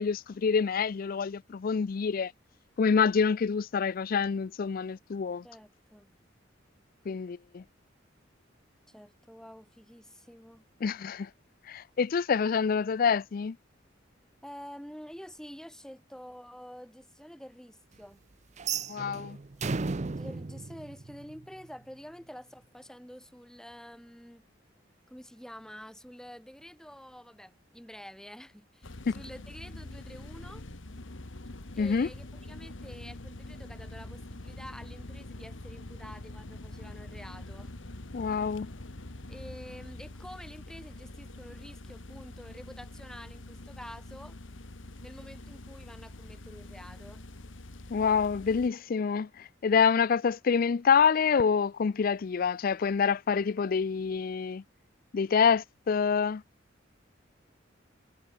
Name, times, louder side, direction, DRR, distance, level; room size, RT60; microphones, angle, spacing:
voice 1, 0.0-2.3 2.8-5.4 7.1-7.6 10.8-11.3 11.7-13.6 18.9-19.4 31.8-32.1 38.1-38.7 47.9-54.6 55.1-56.4, left 6 dB, 45° left, 0.4 m, -27 dB
voice 2, 5.4-6.1 8.9-10.6 14.4-18.2 20.1-24.5 25.1-30.7 31.7-37.7 39.3-44.4 45.0-47.3, equal, 5° left, 7.6 m, -48 dB
sound 1, 18.6-21.7, right 4 dB, 35° right, 0.6 m, -35 dB
sound 2, 28.8-48.7, left 2 dB, 80° left, 1.7 m, -45 dB
head